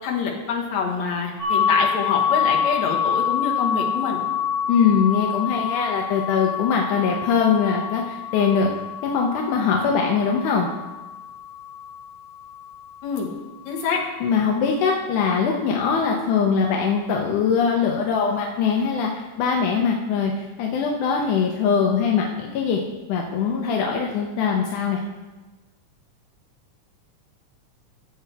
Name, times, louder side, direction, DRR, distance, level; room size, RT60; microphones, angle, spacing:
voice 1, 0.0-4.3 13.0-13.3 13.6-14.0, left 5 dB, 65° left, -2 dB, 2.8 m, -26 dB
sound 1, 1.4-13.1, left 8 dB, 35° left, 3.4 m, -27 dB
voice 2, 4.7-8.7 9.0-10.7 14.2-22.8 23.1-25.0, left 6 dB, 85° left, 0 dB, 2.3 m, -22 dB
14.5 x 7.8 x 3.4 m, 1.2 s
omnidirectional pair, 3.5 m